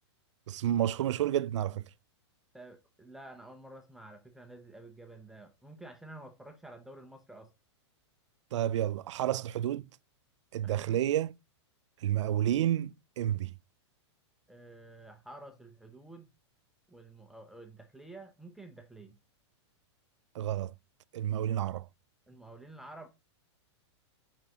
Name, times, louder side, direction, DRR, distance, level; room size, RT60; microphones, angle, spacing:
voice 1, 0.5-1.8 8.5-9.8 10.5-11.3 12.0-13.5 20.4-20.7 21.1-21.9, right 11 dB, 85° right, 0.4 m, -30 dB
voice 2, 2.5-7.5 10.6-11.0 14.5-16.3 16.9-19.2 22.3-23.1, right 2 dB, ahead, 0.5 m, -50 dB
7.2 x 5.1 x 2.8 m
supercardioid pair, 160°, 15 cm